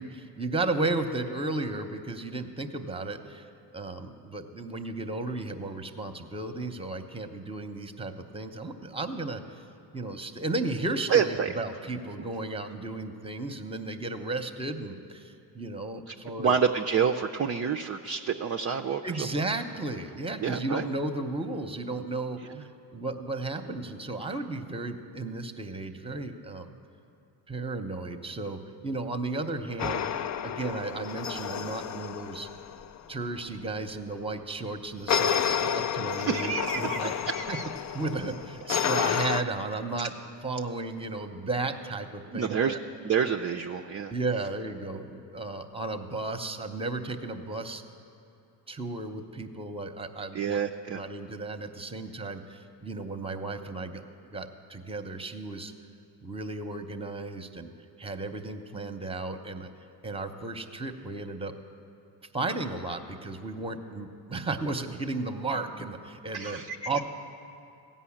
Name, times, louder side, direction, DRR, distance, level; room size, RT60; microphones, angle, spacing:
voice 1, 0.0-3.5 3.7-9.6 9.9-16.6 19.0-26.7 27.5-30.1 30.4-32.5 33.1-37.1 37.5-37.6 37.9-40.1 40.4-42.8 44.1-47.8 48.7-50.6 50.9-55.7 56.2-57.7 58.0-59.7 60.0-61.5 62.3-67.0, right 2 dB, 10° right, 7 dB, 0.8 m, -34 dB
voice 2, 11.1-11.5 16.1-19.3 20.4-20.9 22.5-22.6 36.2-37.7 39.0-39.3 42.3-42.8 43.0-44.1 50.3-51.0 66.3-67.0, right 6 dB, 30° right, 4 dB, 0.5 m, -28 dB
sound 1, 29.8-33.0 35.1-39.4, left 8 dB, 40° left, 0.4 m, -30 dB
15.5 x 5.5 x 8.6 m, 2.8 s
supercardioid pair, 70°, 50 cm